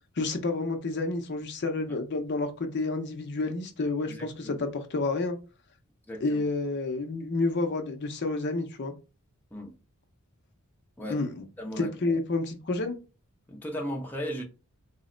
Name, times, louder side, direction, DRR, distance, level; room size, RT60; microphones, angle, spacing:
voice 1, 0.2-5.4 6.2-8.9 11.1-11.4 11.8-13.0, left 3 dB, 50° left, 0.6 m, -29 dB
voice 2, 4.1-4.6 6.1-6.4 9.5-9.7 11.0-11.2 11.6-11.9 13.5-14.4, equal, 10° left, 0.6 m, -36 dB
3.9 x 2.1 x 3.7 m
head